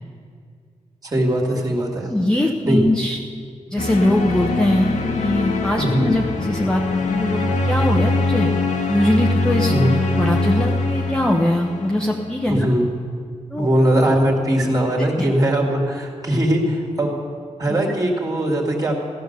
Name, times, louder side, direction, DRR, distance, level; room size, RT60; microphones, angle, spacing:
voice 1, 1.0-2.1 2.7-2.8 5.8-6.0 9.7-10.0 12.5-12.9 13.6-17.2 17.6-18.9, right 1 dB, 30° right, -1 dB, 2.4 m, -20 dB
voice 2, 2.1-3.2 3.7-8.5 8.9-9.7 10.1-12.7 13.5-13.7 15.2-15.3, left 1 dB, 5° left, 0 dB, 0.8 m, -21 dB
sound 1, 3.8-12.6, left 3 dB, 80° left, 1.5 m, -23 dB
16.0 x 12.0 x 6.7 m, 2.1 s
wide cardioid pair, 180°, 12 cm